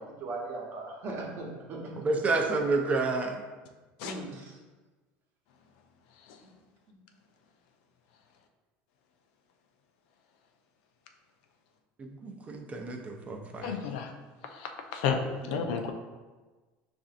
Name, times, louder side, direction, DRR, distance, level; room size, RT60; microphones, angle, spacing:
voice 1, 0.0-1.9 4.0-4.6 6.9-7.0 15.4-15.7, right 2 dB, 45° right, -2 dB, 1.0 m, -39 dB
voice 2, 2.0-3.4 12.0-13.7, right 3 dB, 25° right, 2 dB, 0.5 m, -30 dB
voice 3, 13.6-14.1 14.5-15.2 15.5-15.9, left 7 dB, 75° left, 4 dB, 0.5 m, -32 dB
5.5 x 2.6 x 2.5 m, 1.3 s
supercardioid pair, 110°, 5 cm